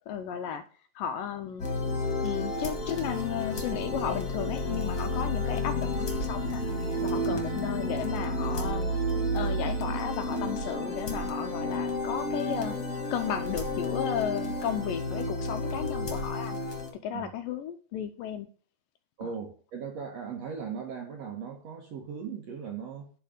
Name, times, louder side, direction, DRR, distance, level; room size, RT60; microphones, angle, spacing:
voice 1, 0.1-0.6 1.0-1.7 2.2-6.6 7.0-8.9 9.3-12.8 13.1-16.6 17.0-18.5 19.2-19.3, left 8 dB, 80° left, 2.1 m, -34 dB
sound 1, 1.6-16.9, left 1 dB, 35° left, 1.7 m, -31 dB
voice 2, 19.2-23.1, right 6 dB, 65° right, 1.7 m, -38 dB
10.5 x 4.2 x 5.1 m
omnidirectional pair, 4.4 m